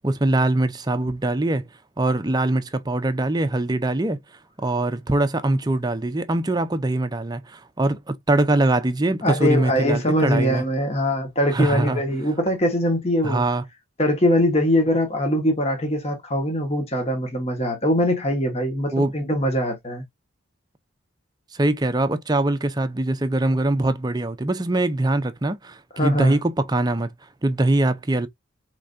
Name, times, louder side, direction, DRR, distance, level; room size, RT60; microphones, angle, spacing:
voice 1, 0.0-1.6 2.0-4.2 4.6-10.6 11.5-12.0 13.2-13.6 18.9-19.1 21.5-27.1 27.4-28.3, right 2 dB, 20° right, 0.5 m, -22 dB
voice 2, 9.2-13.4 14.0-20.0 25.9-26.4, equal, 30° left, 1.1 m, -22 dB
4.7 x 3.3 x 2.5 m
head